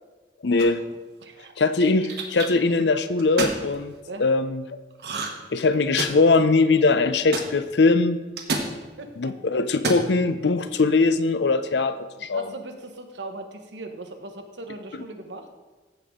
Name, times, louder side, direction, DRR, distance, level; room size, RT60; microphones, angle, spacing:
voice 1, 0.4-0.8 1.6-3.9 4.2-4.6 5.5-8.2 9.2-12.0 12.2-12.5 14.9-15.0, left 3 dB, 80° left, 12 dB, 0.6 m, -21 dB
sound 1, 0.6-0.9 1.8-2.5 3.2-3.6 5.0-5.5 5.7-6.4 7.3-7.5 8.4-8.7 9.7-10.1, right 3 dB, 70° right, 1.2 m, -28 dB
voice 2, 1.2-1.5 4.1-4.3 9.0-9.4 12.3-15.5, right 2 dB, 90° right, 5 dB, 1.1 m, -39 dB
14.5 x 5.5 x 3.7 m, 1.2 s
head